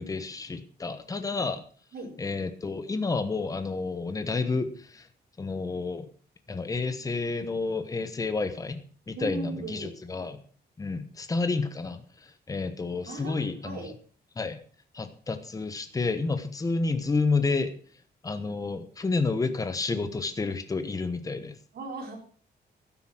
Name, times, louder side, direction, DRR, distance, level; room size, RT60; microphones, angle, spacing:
voice 1, 0.0-1.6 2.2-5.1 5.4-6.1 6.5-8.8 9.1-10.4 10.8-13.8 14.4-14.6 14.9-17.7 18.2-21.5, left 3 dB, 20° left, 10 dB, 1.2 m, -30 dB
voice 2, 9.1-9.9 13.1-14.0 21.7-22.2, right 2 dB, 60° right, 1 dB, 4.3 m, -37 dB
12.0 x 9.7 x 6.1 m, 0.43 s
wide cardioid pair, 160°, 18 cm